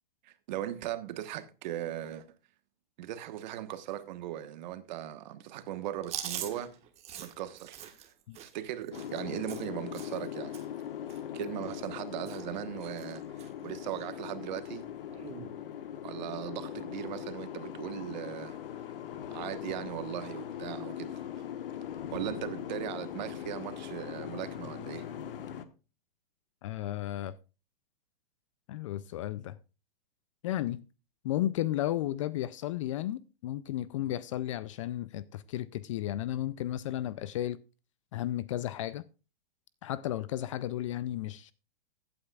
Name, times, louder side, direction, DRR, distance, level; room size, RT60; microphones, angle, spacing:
voice 1, 0.2-2.3 3.0-6.8 7.2-8.1 8.4-10.5 11.3-14.9 16.0-18.6 19.3-21.2 22.1-25.1, right 12 dB, 50° right, 1.2 m, -38 dB
Chewing mastication, 6.0-10.3 10.5-10.8 11.1-12.0 12.2-12.6 12.8-13.5 13.9-14.1 15.1-15.5, right 10 dB, 20° right, 1.4 m, -43 dB
Boat Water vehicle, 8.9-25.7, left 10 dB, 70° left, 1.3 m, -40 dB
voice 2, 26.6-27.3 28.7-29.6 30.4-30.8 31.2-37.6 38.1-39.0 39.8-41.5, left 13 dB, 35° left, 0.4 m, -33 dB
15.5 x 8.7 x 2.3 m
hypercardioid pair, 145°, 29 cm